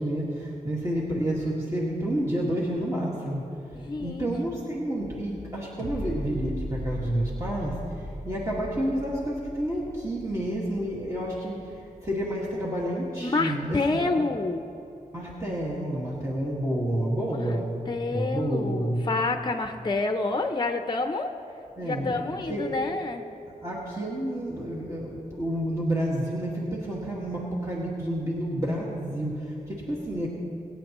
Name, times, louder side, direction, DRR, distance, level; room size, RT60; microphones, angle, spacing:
voice 1, 0.0-14.1 15.1-17.7 18.1-19.1 21.8-22.2 22.5-22.8 23.6-30.3, right 1 dB, 20° right, -6 dB, 1.8 m, -30 dB
voice 2, 3.7-4.3 13.2-14.7 17.3-17.5 17.9-21.3 21.8-23.2, left 3 dB, 30° left, 7 dB, 0.6 m, -28 dB
sound 1, 5.8-12.8 13.3-13.4, equal, 80° right, 1.8 m, -38 dB
23.5 x 8.8 x 3.1 m, 2.7 s
wide cardioid pair, 80°, 14 cm